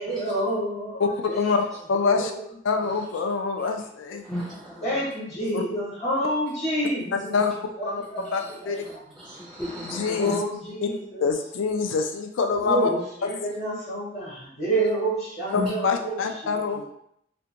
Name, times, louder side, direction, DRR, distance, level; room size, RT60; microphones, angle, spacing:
voice 1, 0.0-1.5 2.0-2.4 4.8-7.4 7.8-8.9 10.1-11.3 12.6-16.8, right 1 dB, 35° left, -6 dB, 0.9 m, -29 dB
voice 2, 1.0-2.3 2.6-4.4 5.5-5.6 7.3-7.5 7.9-8.0 8.3-8.8 9.8-10.4 10.8-10.9 11.2-12.9 15.5-16.8, left 5 dB, 85° left, 5 dB, 0.4 m, -25 dB
voice 3, 4.2-4.8 8.2-8.3 9.2-10.4 15.5-15.7, equal, 5° left, -5 dB, 0.4 m, -33 dB
2.6 x 2.2 x 2.8 m, 0.72 s
head